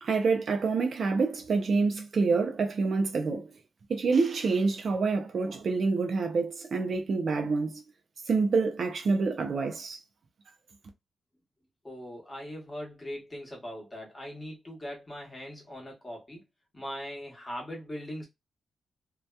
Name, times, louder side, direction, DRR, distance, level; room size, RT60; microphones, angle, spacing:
voice 1, 0.0-3.5 3.9-7.8 8.3-10.0, right 4 dB, 45° right, 0.5 m, -27 dB
voice 2, 11.8-16.4 16.7-18.3, equal, 15° left, 1.0 m, -40 dB
2.7 x 2.2 x 2.2 m
wide cardioid pair, 180°, 0 cm